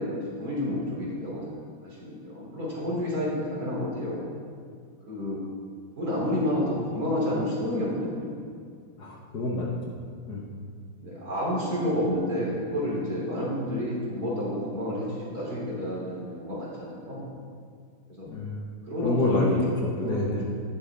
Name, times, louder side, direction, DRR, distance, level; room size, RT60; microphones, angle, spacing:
voice 1, 0.0-1.4 1.8-4.3 5.1-5.4 6.0-8.3 11.0-17.3 18.1-18.3 18.9-19.6 19.9-20.5, equal, 40° right, -5 dB, 3.4 m, -30 dB
voice 2, 9.0-10.0 10.3-10.5 18.3-18.7 19.0-20.4, left 2 dB, 55° left, -3 dB, 1.5 m, -28 dB
13.0 x 10.5 x 3.4 m, 2.1 s
omnidirectional pair, 2.4 m